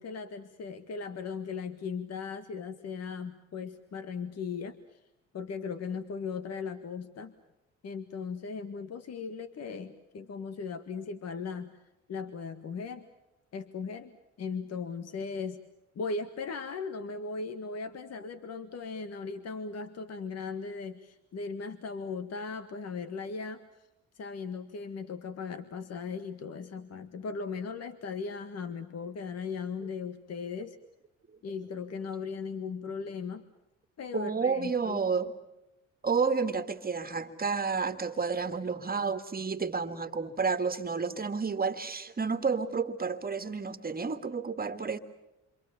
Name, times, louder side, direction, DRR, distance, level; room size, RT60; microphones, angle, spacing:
voice 1, 0.0-5.0 5.3-7.3 7.8-11.8 12.1-13.1 13.5-14.1 14.4-15.6 16.0-23.9 24.1-30.8 31.4-33.4 34.0-35.0, left 5 dB, 55° left, 1.7 m, -38 dB
voice 2, 34.1-35.3 36.0-45.0, right 5 dB, 30° right, 1.9 m, -30 dB
28.0 x 25.5 x 7.1 m
cardioid pair, 90°, 30 cm